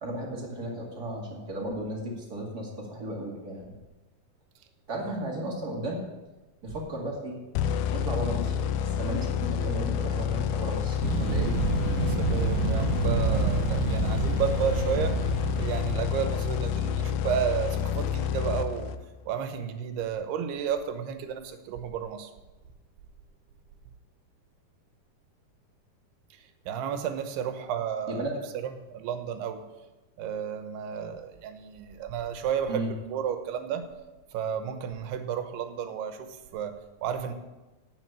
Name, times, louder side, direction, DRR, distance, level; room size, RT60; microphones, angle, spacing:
voice 1, 0.0-3.7 4.9-6.0 6.6-7.4 7.7-11.5 28.1-28.3 32.7-32.9, right 1 dB, 30° right, -2 dB, 2.0 m, -35 dB
sound 1, 7.6-19.2, left 8 dB, 80° left, 2.3 m, -29 dB
voice 2, 9.5-9.9 12.0-15.2 15.6-18.9 19.3-22.3 26.3-28.3 28.5-29.7 30.2-33.9 34.3-37.3, right 8 dB, 85° right, 8 dB, 3.0 m, -32 dB
sound 2, 11.0-16.3, right 5 dB, 65° right, 2.3 m, -29 dB
9.3 x 7.6 x 8.6 m, 1.1 s
omnidirectional pair, 4.6 m